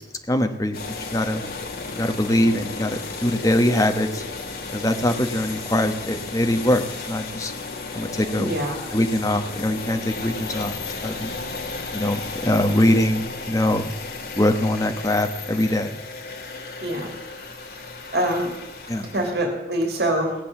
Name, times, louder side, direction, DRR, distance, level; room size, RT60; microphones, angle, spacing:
voice 1, 0.3-0.8 1.1-1.4 2.0-4.2 4.7-7.5 7.9-8.5 8.9-10.7 11.0-11.3 11.9-13.9 14.4-16.0 18.9-19.1, left 1 dB, 20° left, 6 dB, 1.1 m, -22 dB
sound 1, 0.7-19.3, left 3 dB, 60° left, 2.0 m, -34 dB
voice 2, 8.4-8.8 16.8-17.1 17.8-18.5 19.1-20.3, right 1 dB, 65° right, 1 dB, 2.8 m, -25 dB
18.0 x 7.9 x 7.3 m, 1.0 s
head